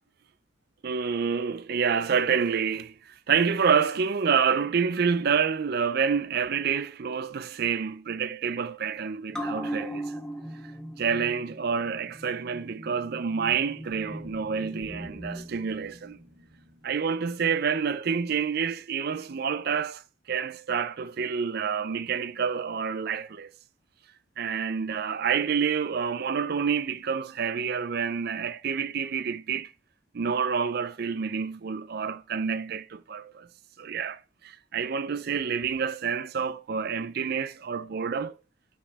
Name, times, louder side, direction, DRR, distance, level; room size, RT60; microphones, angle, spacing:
voice 1, 0.8-10.1 11.0-16.2 16.8-20.0 20.3-23.5 24.4-29.7 30.1-33.5 33.8-38.4, right 6 dB, 50° right, 0.4 m, -28 dB
sound 1, 9.3-16.2 16.6-16.7, right 1 dB, 5° left, 0.8 m, -39 dB
sound 2, 13.9-18.1, right 1 dB, 70° right, 1.1 m, -51 dB
5.5 x 5.0 x 3.4 m
head